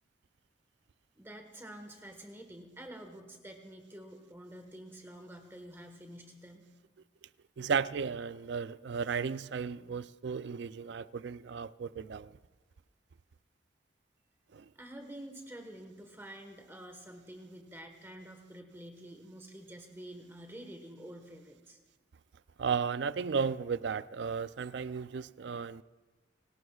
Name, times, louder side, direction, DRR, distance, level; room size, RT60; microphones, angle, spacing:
voice 1, 1.2-6.7 14.7-21.8, right 1 dB, 10° right, 1.3 m, -48 dB
voice 2, 7.6-12.3 22.6-25.8, right 6 dB, 65° right, 0.4 m, -34 dB
28.5 x 18.5 x 2.4 m
head